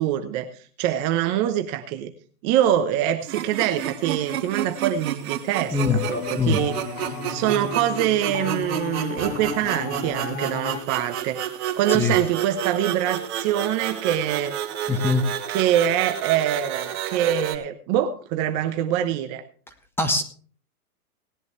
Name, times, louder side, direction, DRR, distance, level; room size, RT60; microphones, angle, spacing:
voice 1, 0.0-2.1 2.4-6.8 7.0-11.4 11.7-14.6 15.5-19.4, right 11 dB, 30° right, 6 dB, 1.0 m, -24 dB
sound 1, 3.2-17.6, right 10 dB, 45° right, 2.8 m, -31 dB
sound 2, 5.7-10.8, left 5 dB, 60° left, 2.5 m, -33 dB
voice 2, 14.9-15.2 20.0-20.2, left 4 dB, 5° left, 6 dB, 1.3 m, -22 dB
18.5 x 11.0 x 3.2 m, 0.43 s
hypercardioid pair, 135°, 45 cm